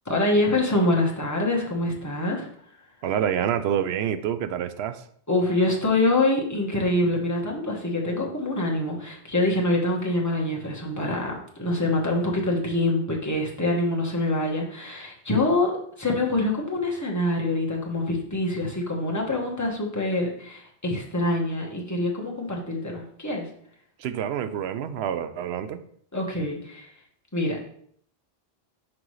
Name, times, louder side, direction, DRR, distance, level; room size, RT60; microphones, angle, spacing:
voice 1, 0.0-2.5 5.3-15.7 16.0-23.5 26.1-26.9 27.3-27.6, left 2 dB, 15° left, -2 dB, 1.2 m, -25 dB
voice 2, 3.0-5.0 24.0-25.8, right 9 dB, 90° right, 11 dB, 0.8 m, -27 dB
6.0 x 5.2 x 3.2 m, 0.63 s
omnidirectional pair, 1.0 m